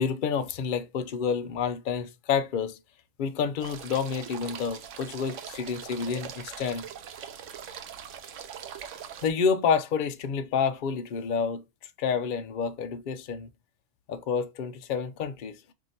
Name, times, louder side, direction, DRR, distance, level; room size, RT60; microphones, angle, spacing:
voice 1, 0.0-2.8 3.2-6.9 9.2-11.6 12.0-13.5 14.1-15.7, left 6 dB, 55° left, 0.7 m, -29 dB
sound 1, 3.6-9.3, right 8 dB, 90° right, 1.0 m, -42 dB
4.7 x 2.7 x 4.1 m
omnidirectional pair, 1.2 m